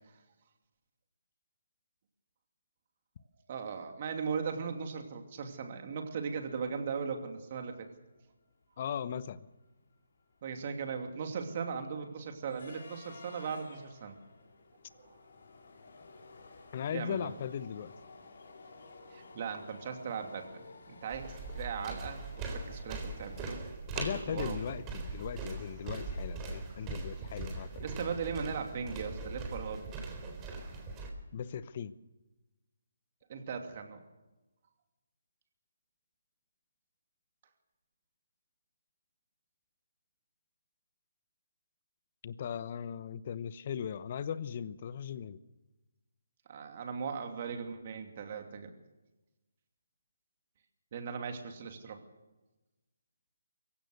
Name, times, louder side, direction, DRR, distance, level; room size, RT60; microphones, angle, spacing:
voice 1, 3.5-7.9 10.4-14.2 15.0-15.2 16.9-17.3 19.1-23.6 24.3-24.6 27.8-29.8 33.3-34.0 46.5-48.7 50.9-52.0, right 6 dB, 40° right, 5 dB, 2.8 m, -38 dB
sound 1, 8.2-8.3 8.5-8.7 9.1-23.6, left 3 dB, 60° left, 4.8 m, -54 dB
voice 2, 8.8-9.5 16.7-17.9 23.9-27.8 31.3-31.9 42.2-45.4, left 8 dB, 40° left, 15 dB, 0.9 m, -38 dB
Footsteps indoors wood floor, 21.1-31.1, right 3 dB, 20° right, 3.9 m, -40 dB
24.5 x 16.0 x 6.7 m, 1.1 s
figure-of-eight pair, 145°, 0 cm